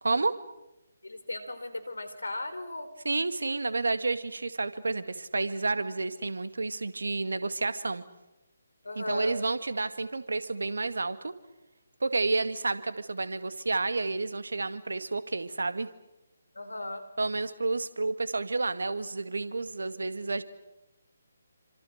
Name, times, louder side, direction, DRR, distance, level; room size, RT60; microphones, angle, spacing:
voice 1, 0.0-0.3 3.1-8.0 9.0-11.3 12.0-15.9 17.2-20.4, right 3 dB, 75° right, 12 dB, 2.0 m, -30 dB
voice 2, 1.0-2.9 8.8-9.3 16.5-17.0, left 2 dB, 80° left, 10 dB, 4.1 m, -36 dB
28.0 x 26.0 x 6.6 m, 0.97 s
figure-of-eight pair, 145°, 0 cm